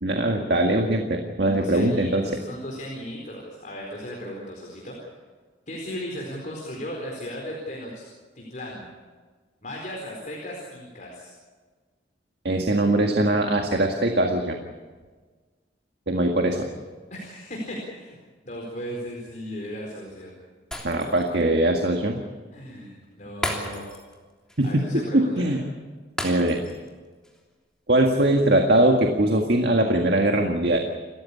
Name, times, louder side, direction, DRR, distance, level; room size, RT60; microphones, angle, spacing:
voice 1, 0.0-2.2 12.4-14.6 16.1-16.7 20.8-22.2 24.6-24.8 25.1-25.6 26.2-26.6 27.9-30.8, right 1 dB, 55° right, 3 dB, 1.9 m, -21 dB
voice 2, 1.4-5.1 5.7-8.0 8.3-8.9 9.6-11.3 17.1-18.2 18.4-20.3 22.5-23.9 24.6-25.6, equal, 40° left, -1 dB, 4.4 m, -36 dB
Shatter, 20.7-21.4 21.8-21.9 23.4-24.2 24.5-24.7 26.2-26.9 27.2-27.4, left 1 dB, 5° left, 3.3 m, -33 dB
29.0 x 14.5 x 8.6 m, 1.4 s
head